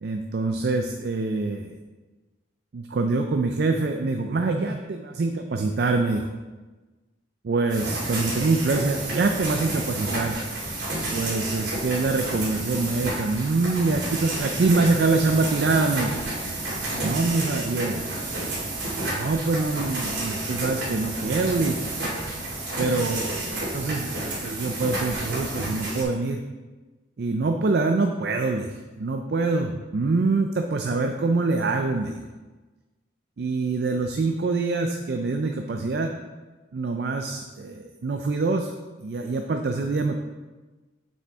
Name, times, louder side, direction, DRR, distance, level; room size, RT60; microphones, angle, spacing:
voice 1, 0.0-1.8 2.7-6.3 7.4-10.4 11.1-16.2 17.0-18.0 19.1-21.8 22.8-26.4 27.2-32.2 33.4-36.1 36.7-38.7 39.0-40.1, right 3 dB, 55° right, 5 dB, 0.4 m, -25 dB
sound 1, 7.7-26.0, right 2 dB, 70° right, 2.3 m, -30 dB
7.0 x 6.0 x 3.5 m, 1.2 s
head